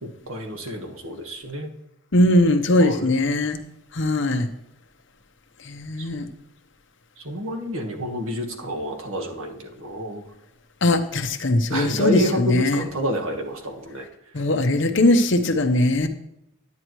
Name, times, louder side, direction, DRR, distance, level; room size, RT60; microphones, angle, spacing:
voice 1, 0.0-1.7 2.8-3.1 6.0-6.1 7.2-10.2 11.7-14.0, equal, 80° right, 3 dB, 1.5 m, -29 dB
voice 2, 2.1-3.6 3.9-4.5 5.7-6.3 10.8-12.8 14.3-16.1, left 1 dB, 60° left, 6 dB, 0.9 m, -20 dB
9.9 x 9.7 x 3.1 m, 0.83 s
head